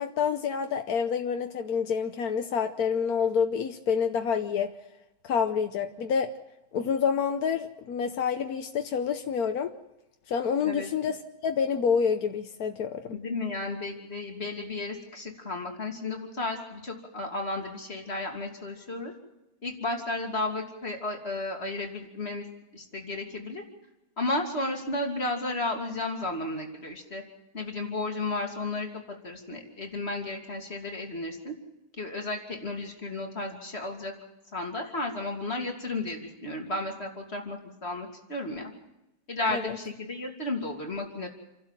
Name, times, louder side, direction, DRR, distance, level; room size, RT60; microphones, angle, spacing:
voice 1, 0.0-4.7 5.2-6.3 6.7-9.7 10.3-11.2 11.4-13.2 39.5-39.7, left 6 dB, 90° left, 5 dB, 1.4 m, -28 dB
voice 2, 13.1-19.1 19.6-22.5 22.7-23.6 24.2-27.2 27.5-31.5 32.0-34.1 34.5-38.7 39.3-41.3, left 2 dB, 45° left, 2 dB, 3.1 m, -33 dB
28.5 x 12.0 x 7.5 m, 0.92 s
omnidirectional pair, 1.6 m